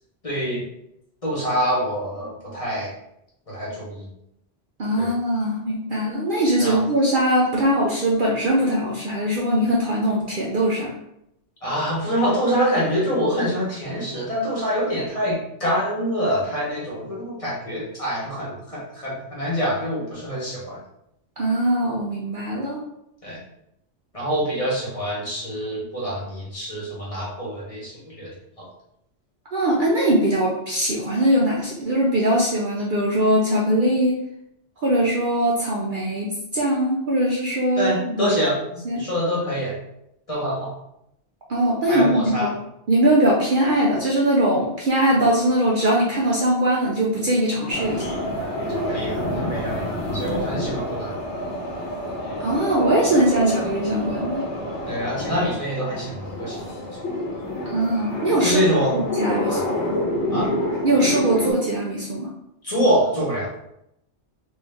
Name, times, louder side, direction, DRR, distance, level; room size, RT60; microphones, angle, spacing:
voice 1, 0.2-0.6 1.2-2.9 3.5-4.1 5.0-5.1 6.6-6.8 11.6-20.8 23.2-23.4 24.1-28.3 28.6-28.7 37.8-39.8 40.3-40.8 41.9-42.5 48.7-51.1 54.9-56.6 56.9-57.0 58.4-59.0 59.4-59.6 60.3-60.5 62.6-63.5, equal, 30° left, -6 dB, 1.1 m, -25 dB
voice 2, 4.8-10.9 21.4-22.8 29.5-34.2 34.8-38.3 38.9-39.0 41.5-42.5 42.9-48.1 52.4-54.4 57.7-58.6 58.9-59.8 60.8-62.3, right 1 dB, 55° right, -3 dB, 0.6 m, -21 dB
sound 1, 47.7-61.5, left 1 dB, 70° left, 1.0 m, -28 dB
3.1 x 2.6 x 3.4 m, 0.80 s
omnidirectional pair, 1.2 m